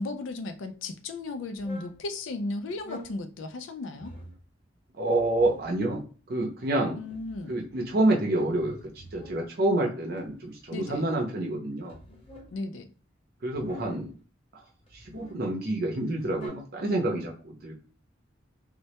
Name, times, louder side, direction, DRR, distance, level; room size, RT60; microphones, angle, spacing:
voice 1, 0.0-4.1 6.9-7.5 10.7-11.0 12.5-12.9, left 2 dB, 85° left, 0.4 m, -35 dB
sound 1, 1.6-2.0 2.7-3.2 4.0-4.4 5.1-5.8 6.7-7.9 8.4-9.4 10.2-11.1 11.9-12.6 13.5-14.1 14.8-15.4 16.1-16.5, left 1 dB, 30° left, 0.7 m, -48 dB
voice 2, 4.9-6.0 6.3-7.0 7.5-8.8 9.1-12.0 13.4-14.1 14.9-17.7, right 1 dB, 50° right, 0.6 m, -28 dB
2.1 x 2.1 x 2.8 m
head